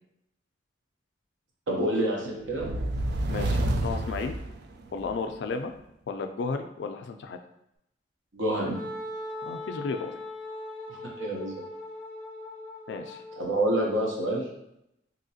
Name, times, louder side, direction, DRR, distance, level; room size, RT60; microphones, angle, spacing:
voice 1, 1.7-2.6 8.3-8.8 11.2-11.5 13.4-14.4, right 1 dB, 80° right, -2 dB, 0.9 m, -27 dB
sound 1, 2.5-5.2, right 1 dB, 60° right, 0.3 m, -29 dB
voice 2, 3.3-4.4 4.9-5.7 6.1-7.4 9.4-10.1 12.9-13.2, left 4 dB, 65° left, 6 dB, 0.3 m, -33 dB
Wind instrument woodwind instrument, 8.7-14.4, left 2 dB, 15° right, 1.1 m, -40 dB
2.9 x 2.8 x 2.7 m, 0.81 s
head